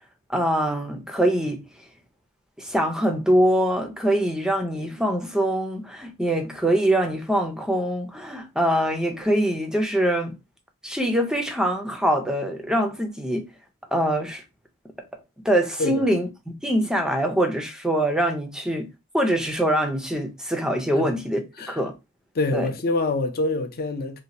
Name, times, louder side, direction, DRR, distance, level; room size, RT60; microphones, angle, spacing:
voice 1, 0.3-1.7 2.6-10.3 10.8-13.5 13.9-14.4 15.4-16.3 16.6-18.9 19.1-21.4 21.7-21.9 22.5-22.7, right 1 dB, 5° right, 0.5 m, -23 dB
voice 2, 22.3-24.2, left 2 dB, 45° left, 0.5 m, -25 dB
2.8 x 2.1 x 4.0 m
head